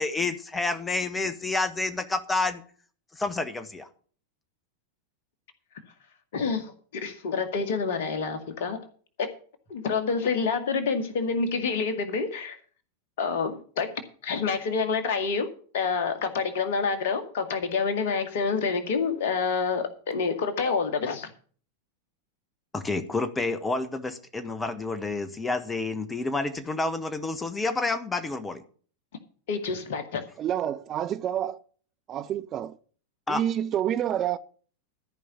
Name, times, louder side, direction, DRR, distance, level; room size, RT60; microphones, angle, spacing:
voice 1, 0.0-2.6 3.1-3.9 22.7-28.6 33.3-33.4, left 3 dB, 15° left, 1.3 m, -29 dB
voice 2, 6.3-8.8 9.2-9.3 9.7-12.6 13.2-13.9 14.2-15.5 15.7-21.3 29.5-30.2, left 5 dB, 55° left, 2.0 m, -27 dB
voice 3, 30.4-31.6 32.1-32.8 33.3-34.4, right 10 dB, 30° right, 0.6 m, -28 dB
14.0 x 5.3 x 8.4 m
figure-of-eight pair, 90°, 0 cm